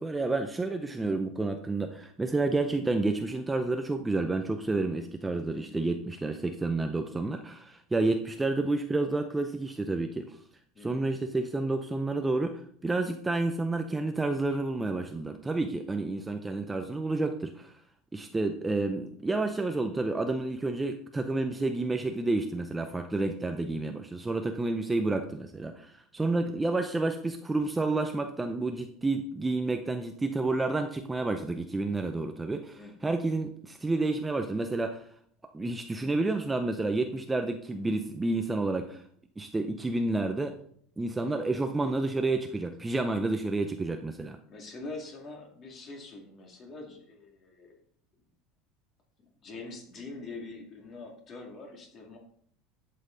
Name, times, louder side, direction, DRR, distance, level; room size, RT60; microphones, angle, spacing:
voice 1, 0.0-10.4 10.8-17.7 18.1-35.0 35.5-39.0 39.4-40.6 41.0-44.4, right 2 dB, 10° right, 6 dB, 0.5 m, -30 dB
voice 2, 5.5-5.8 10.7-11.1 32.8-33.1 44.4-47.8 49.4-52.2, left 3 dB, 30° left, 2 dB, 2.3 m, -44 dB
11.5 x 7.6 x 3.9 m, 0.62 s
cardioid pair, 160°, 0 cm